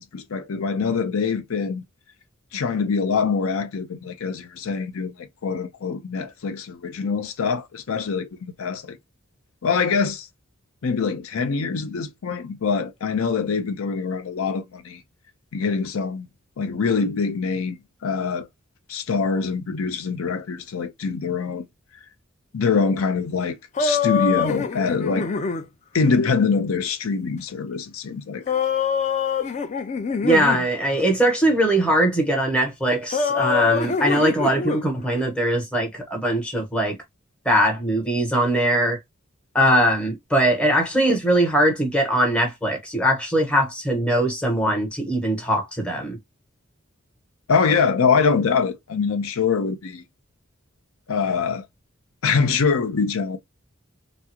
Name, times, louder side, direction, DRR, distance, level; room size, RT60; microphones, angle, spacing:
voice 1, 0.0-1.8 2.5-9.0 9.6-10.3 10.8-15.0 15.5-16.3 16.6-18.5 18.9-21.7 22.5-25.3 25.9-28.5 47.5-50.0 51.1-51.7 52.2-53.4, left 5 dB, 85° left, 0.5 m, -24 dB
sound 1, 23.8-25.6 28.5-30.7 33.1-34.8, left 6 dB, 35° left, 0.4 m, -24 dB
voice 2, 30.2-37.0 37.4-39.0 39.5-46.2, right 1 dB, 5° left, 1.0 m, -21 dB
3.5 x 2.0 x 2.8 m
head